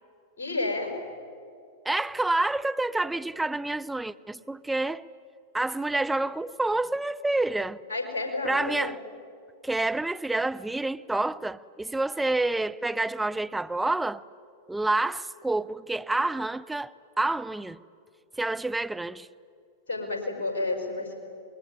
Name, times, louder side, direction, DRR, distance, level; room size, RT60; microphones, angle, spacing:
voice 1, 0.4-0.9 7.9-8.9 19.9-21.2, left 2 dB, 65° left, 5.6 m, -30 dB
voice 2, 1.8-5.0 5.5-7.8 8.4-9.0 9.6-14.2 14.7-17.8 18.4-19.3, right 2 dB, 5° right, 0.7 m, -28 dB
26.0 x 21.5 x 9.8 m
figure-of-eight pair, 95°, 0 cm